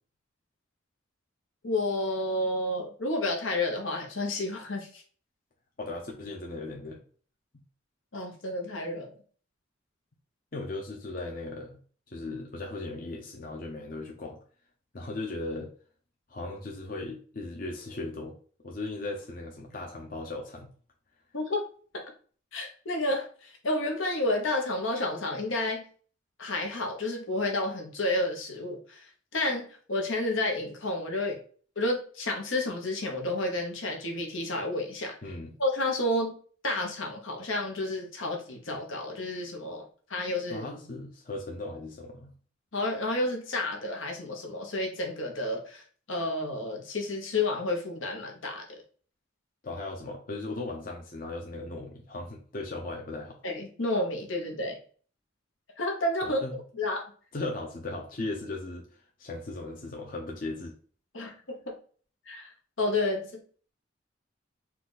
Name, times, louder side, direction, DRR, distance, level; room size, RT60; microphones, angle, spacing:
voice 1, 1.6-5.0 8.1-9.1 21.3-21.6 21.9-22.0 22.5-25.9 26.4-31.4 31.8-35.1 35.6-36.3 36.6-39.8 40.1-40.7 42.7-45.8 46.1-48.6 53.4-54.8 55.8-56.4 56.8-57.0 61.1-61.7 62.3-62.5 62.8-63.4, left 2 dB, 85° left, 1 dB, 1.1 m, -30 dB
voice 2, 5.8-7.0 10.5-11.8 12.1-14.4 14.9-15.7 16.3-18.3 18.6-20.7 35.2-35.5 40.5-42.3 49.6-53.4 56.2-56.6 57.3-58.8 59.2-60.7, left 2 dB, 45° left, 0 dB, 0.7 m, -37 dB
4.4 x 2.5 x 3.9 m, 0.43 s
head